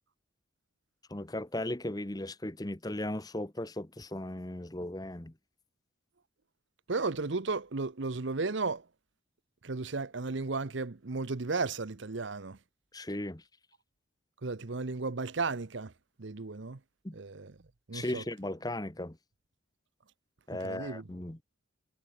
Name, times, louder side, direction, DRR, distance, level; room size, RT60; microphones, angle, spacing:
voice 1, 1.1-5.3 12.9-13.4 17.0-17.1 17.9-19.2 20.5-21.4, left 1 dB, 20° left, 1.1 m, -37 dB
voice 2, 6.9-8.8 9.6-12.6 14.4-15.9 16.2-16.8 17.1-17.5 17.9-18.2 20.6-21.0, right 3 dB, 65° right, 0.9 m, -34 dB
head